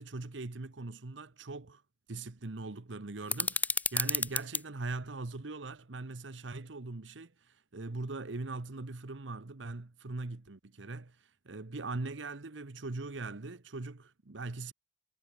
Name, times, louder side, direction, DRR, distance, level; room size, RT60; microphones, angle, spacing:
voice 1, 0.0-1.8 2.1-14.7, right 3 dB, 90° right, 1.1 m, -41 dB
sound 1, 3.3-4.6, left 4 dB, 10° left, 0.4 m, -31 dB
head